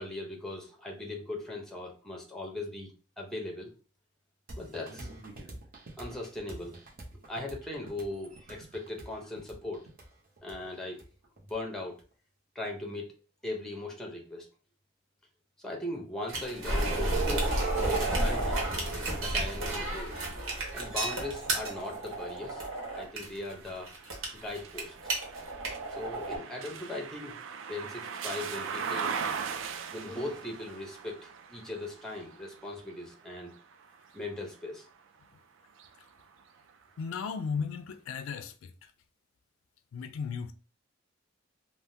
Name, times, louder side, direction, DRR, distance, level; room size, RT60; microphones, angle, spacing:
voice 1, 0.0-2.9 3.2-3.7 4.6-5.1 6.0-6.8 7.3-9.8 10.4-11.0 11.5-12.0 12.5-14.5 15.6-18.6 19.1-20.1 20.7-22.6 22.9-23.9 24.3-25.1 25.9-27.4 27.7-29.1 29.9-33.5 34.1-34.9, left 2 dB, 5° left, 0.6 m, -39 dB
sound 1, 4.5-12.0, right 1 dB, 45° right, 0.7 m, -47 dB
sound 2, 16.3-26.4, right 2 dB, 85° right, 1.1 m, -31 dB
sound 3, 19.1-35.1 35.6-36.9, right 6 dB, 65° right, 0.3 m, -41 dB
voice 2, 37.0-38.9 39.9-40.5, left 6 dB, 85° left, 0.3 m, -35 dB
3.4 x 2.1 x 2.6 m
head